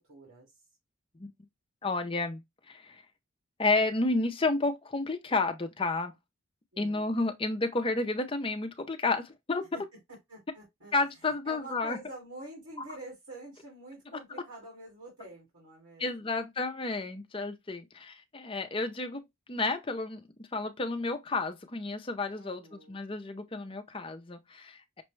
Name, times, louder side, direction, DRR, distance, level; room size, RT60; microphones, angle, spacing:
voice 1, 0.1-0.5 6.7-7.2 9.7-9.8 10.1-10.9 11.4-16.4 22.4-23.0, right 1 dB, 90° right, 2.0 m, -47 dB
voice 2, 1.8-3.0 3.6-6.1 6.8-9.6 10.9-12.0 16.0-19.2 19.5-20.2 20.5-25.0, left 3 dB, 25° left, 0.5 m, -31 dB
6.0 x 2.2 x 3.1 m
head